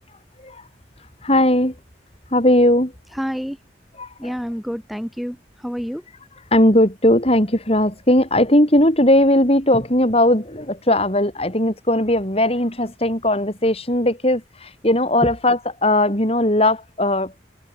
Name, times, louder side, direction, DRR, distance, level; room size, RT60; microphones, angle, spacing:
voice 1, 1.2-1.8 2.3-2.9 4.0-4.3 6.5-17.3, left 1 dB, 35° left, 6.9 m, -18 dB
voice 2, 3.2-3.6 4.2-6.0, equal, ahead, 5.9 m, -28 dB
head